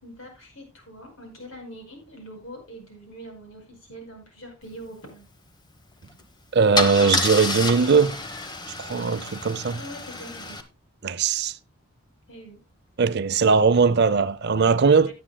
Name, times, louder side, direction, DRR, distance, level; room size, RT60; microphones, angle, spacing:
voice 1, 0.0-5.3 8.9-9.2 9.7-10.6 12.3-12.6 15.0-15.1, right 1 dB, 60° left, 5.1 m, -43 dB
Car / Engine starting / Idling, 6.0-6.2 6.7-10.6, left 3 dB, 20° left, 1.0 m, -29 dB
voice 2, 6.5-8.2 8.8-9.2 9.5-9.8 11.0-11.6 13.0-15.1, right 5 dB, 50° right, 0.5 m, -19 dB
17.5 x 8.7 x 2.2 m
head